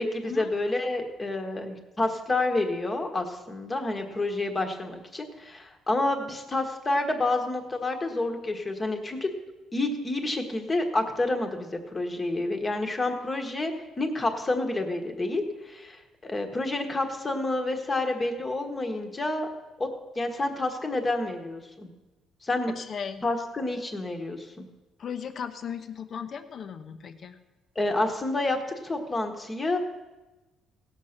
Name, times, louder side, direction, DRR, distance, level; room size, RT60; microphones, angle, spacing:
voice 1, 0.0-9.3 9.7-19.5 19.8-19.9 20.1-21.9 22.4-22.7 23.2-24.7 27.7-28.6 28.8-29.8, left 2 dB, 20° left, 4 dB, 1.4 m, -29 dB
voice 2, 22.8-23.2 25.0-27.4, left 7 dB, 45° left, 9 dB, 0.9 m, -37 dB
16.5 x 6.5 x 5.9 m, 1.1 s
cardioid pair, 130°, 0 cm